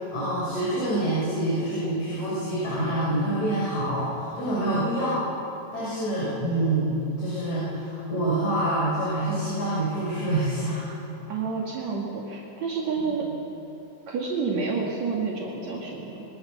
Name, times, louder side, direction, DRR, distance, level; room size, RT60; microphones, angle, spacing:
voice 1, 0.1-5.3 5.7-6.9 7.2-10.9 13.0-13.1, right 1 dB, 70° left, -8 dB, 7.6 m, -26 dB
voice 2, 11.3-13.3 14.1-16.3, right 5 dB, 65° right, -3 dB, 3.5 m, -29 dB
27.0 x 24.0 x 6.6 m, 3.0 s
omnidirectional pair, 3.4 m